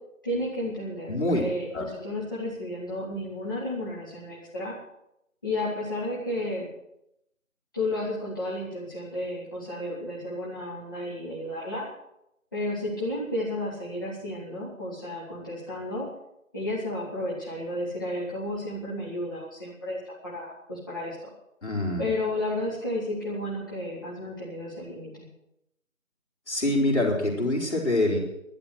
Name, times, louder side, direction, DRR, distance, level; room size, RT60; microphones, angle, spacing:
voice 1, 0.2-4.7 5.4-6.7 7.7-11.9 12.5-16.1 16.5-21.2 22.0-25.2, left 1 dB, 15° left, -9 dB, 1.7 m, -32 dB
voice 2, 1.1-1.5 1.7-1.8 21.6-22.1 26.5-28.2, left 1 dB, 55° left, -1 dB, 4.7 m, -25 dB
11.5 x 11.0 x 7.9 m, 0.83 s
figure-of-eight pair, 165°, 41 cm